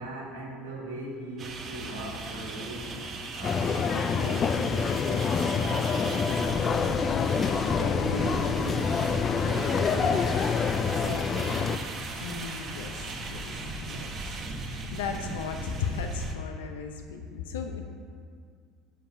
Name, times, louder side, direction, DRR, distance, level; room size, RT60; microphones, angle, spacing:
voice 1, 0.0-3.0 3.3-7.2 7.8-10.3 10.7-11.7, right 1 dB, 85° right, -2 dB, 1.8 m, -39 dB
sound 1, 1.4-16.3, right 2 dB, 40° right, 1.3 m, -37 dB
sound 2, 3.4-11.8, left 6 dB, 35° left, 0.4 m, -26 dB
voice 2, 7.8-8.3 12.2-13.0 13.3-13.5 13.8-14.1 14.6-17.8, left 6 dB, 85° left, 5 dB, 0.7 m, -36 dB
7.5 x 5.5 x 5.8 m, 2.1 s
hypercardioid pair, 85°, 0 cm